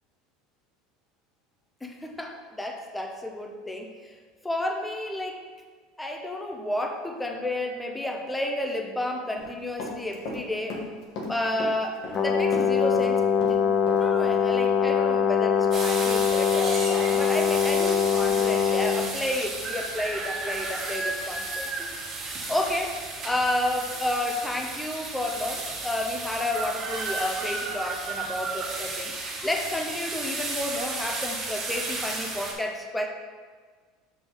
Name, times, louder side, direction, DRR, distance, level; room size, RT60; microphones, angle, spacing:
voice 1, 1.8-4.1 4.4-5.4 6.0-10.8 11.3-13.2 13.5-13.6 14.0-29.1 29.4-33.1, left 1 dB, 10° left, 2 dB, 0.9 m, -31 dB
Run, 9.4-10.4 10.7-12.2 12.5-14.1 14.3-14.5, left 2 dB, 60° left, 1.3 m, -36 dB
Brass instrument, 12.1-19.1, left 7 dB, 35° left, 0.7 m, -23 dB
sound 1, 15.7-32.5, right 3 dB, 35° right, 2.0 m, -33 dB
5.8 x 5.1 x 3.9 m, 1.5 s
supercardioid pair, 110°, 0 cm